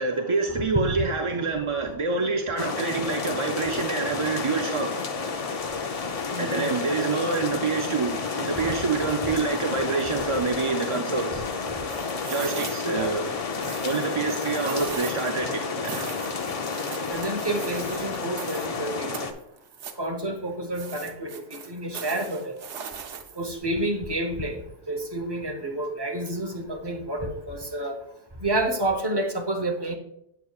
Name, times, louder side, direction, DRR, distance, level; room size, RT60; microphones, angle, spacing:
voice 1, 0.0-5.0 6.4-11.4 12.3-13.4 13.8-16.1, right 4 dB, 45° right, 0.4 m, -27 dB
sound 1, 2.6-19.3, left 4 dB, 45° left, 0.5 m, -31 dB
voice 2, 6.3-6.7 12.8-13.1 17.1-19.3 20.0-22.5 23.4-24.6 24.9-28.0 28.4-29.9, right 1 dB, 25° right, 0.9 m, -29 dB
sound 2, 11.9-13.0 13.6-15.3 15.8-18.8 19.1-20.1 20.7-23.6, right 6 dB, 85° right, 1.0 m, -39 dB
8.0 x 6.9 x 2.4 m
omnidirectional pair, 1.2 m